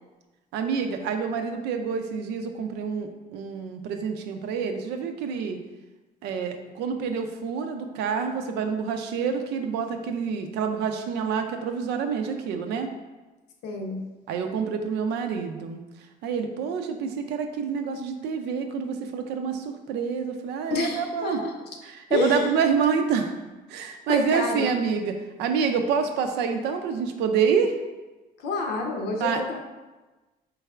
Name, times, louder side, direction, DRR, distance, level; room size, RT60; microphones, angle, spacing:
voice 1, 0.5-5.6 6.2-12.9 14.3-15.8 16.2-21.4 21.8-23.3 23.7-27.7 29.2-29.4, right 6 dB, 85° right, 6 dB, 0.5 m, -27 dB
voice 2, 13.6-14.0 20.7-21.5 22.1-22.5 24.1-24.7 28.4-29.6, left 3 dB, 75° left, 2 dB, 0.7 m, -28 dB
4.6 x 3.2 x 2.3 m, 1.2 s
cardioid pair, 110°, 17 cm